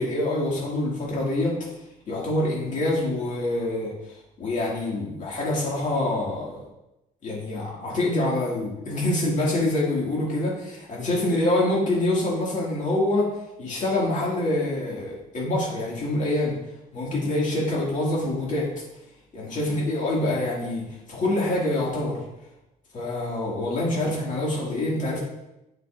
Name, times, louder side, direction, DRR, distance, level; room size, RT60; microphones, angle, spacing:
voice 1, 0.0-1.6 2.1-3.9 4.4-6.6 7.2-13.3 13.6-16.5 16.9-18.7 19.3-22.2 22.9-25.2, left 1 dB, 45° left, -4 dB, 2.2 m, -25 dB
9.3 x 5.3 x 2.5 m, 0.92 s
cardioid pair, 110°, 17 cm